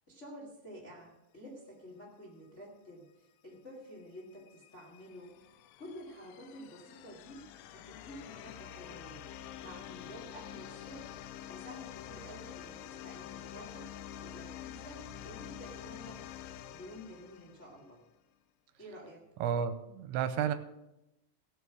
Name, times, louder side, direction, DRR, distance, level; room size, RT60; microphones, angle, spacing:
voice 1, 0.1-3.1 3.4-5.3 5.8-7.4 7.7-9.3 9.6-11.2 11.4-13.9 14.2-15.0 15.2-16.2 16.7-18.0 18.8-19.2, equal, 25° left, -2 dB, 1.6 m, -50 dB
sound 1, 4.2-18.0, left 10 dB, 90° left, 3.0 m, -47 dB
voice 2, 19.4-20.6, right 8 dB, 85° right, 11 dB, 2.9 m, -31 dB
17.5 x 7.0 x 6.1 m, 0.90 s
omnidirectional pair, 5.3 m